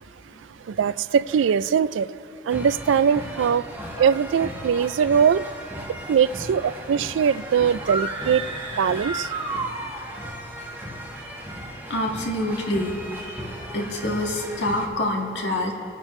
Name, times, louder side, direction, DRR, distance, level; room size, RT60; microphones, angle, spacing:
voice 1, 0.7-2.1 2.5-3.7 4.0-5.4 6.1-8.4 8.8-9.3, right 7 dB, 85° right, 16 dB, 0.3 m, -21 dB
sound 1, 2.5-14.9, equal, 10° right, 1.4 m, -37 dB
sound 2, 7.8-10.4, right 3 dB, 25° right, 1.0 m, -31 dB
voice 2, 11.9-13.4 13.7-15.7, left 1 dB, 70° left, 0 dB, 1.8 m, -26 dB
27.5 x 9.8 x 3.1 m, 2.9 s
head